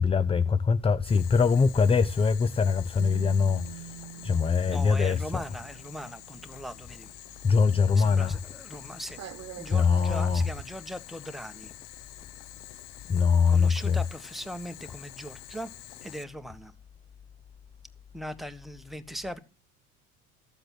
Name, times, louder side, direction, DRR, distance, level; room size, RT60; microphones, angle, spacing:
voice 1, 0.0-5.4 7.4-8.4 9.7-10.5 13.1-14.0, left 5 dB, 15° left, 0.6 m, -23 dB
Boiling, 1.1-16.2, left 14 dB, 60° left, 1.1 m, -47 dB
sound 1, 3.0-7.7 8.0-8.2 8.4-10.6, right 10 dB, 45° right, 1.4 m, -44 dB
voice 2, 4.7-7.1 7.9-9.2 9.6-11.7 13.5-15.7 16.0-16.7 18.1-19.4, equal, ahead, 1.5 m, -39 dB
14.0 x 7.7 x 6.1 m
hypercardioid pair, 75°, 36 cm